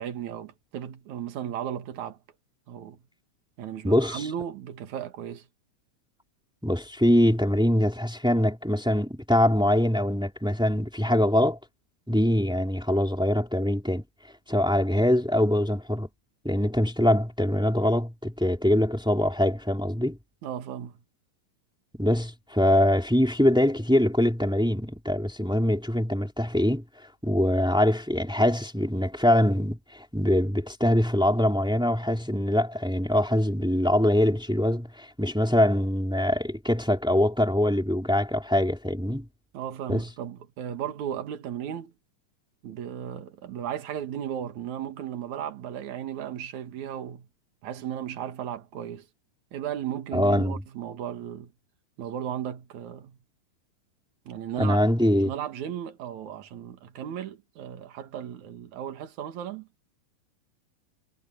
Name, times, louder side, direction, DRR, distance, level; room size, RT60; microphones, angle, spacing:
voice 1, 0.0-2.2 2.7-3.0 3.6-5.5 20.4-21.0 39.5-41.9 42.6-47.3 47.6-49.1 49.5-51.5 52.0-53.2 54.3-54.8 55.2-59.7, right 10 dB, 60° right, 2.9 m, -35 dB
voice 2, 3.8-4.2 6.6-11.6 12.1-14.0 14.5-16.1 16.4-20.2 22.0-26.8 27.2-39.3 39.9-40.1 50.1-50.6 54.6-55.3, left 1 dB, ahead, 2.6 m, -23 dB
omnidirectional pair, 4.0 m